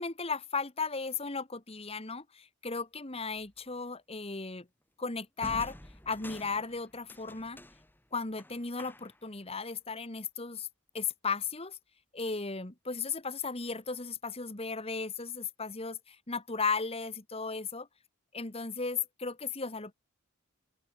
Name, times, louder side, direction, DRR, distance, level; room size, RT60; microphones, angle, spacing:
voice 1, 0.0-4.7 5.0-5.8 6.0-7.6 8.1-10.7 10.9-11.8 12.1-17.9 18.3-19.9, left 4 dB, 25° left, 1.6 m, -35 dB
sound 1, 3.3-3.6 5.4-9.3, left 1 dB, 10° left, 4.3 m, -49 dB
open air
head